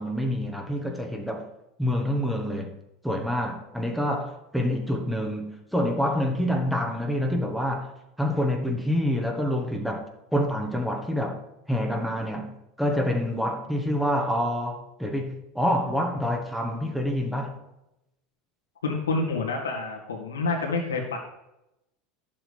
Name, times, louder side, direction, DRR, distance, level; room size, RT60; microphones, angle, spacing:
voice 1, 0.0-1.5 1.8-2.8 3.0-7.9 8.2-11.4 11.7-17.6, equal, ahead, 1.4 m, -27 dB
voice 2, 18.8-21.2, left 3 dB, 85° left, 2.0 m, -28 dB
11.0 x 7.4 x 3.4 m
hypercardioid pair, 80°, 0 cm